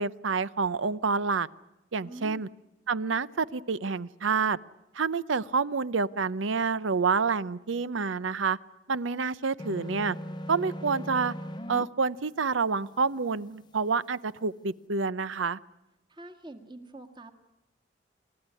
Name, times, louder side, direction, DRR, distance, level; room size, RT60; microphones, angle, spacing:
voice 1, 0.0-1.5 1.9-2.5 2.9-4.6 4.9-8.6 8.9-10.2 10.5-11.3 11.7-15.6, right 4 dB, 85° right, 17 dB, 0.7 m, -28 dB
voice 2, 2.0-2.5 16.1-17.3, right 2 dB, 25° right, 5 dB, 1.9 m, -45 dB
sound 1, 9.6-11.8, equal, 25° left, 0.8 m, -38 dB
28.5 x 13.5 x 9.7 m, 0.96 s
head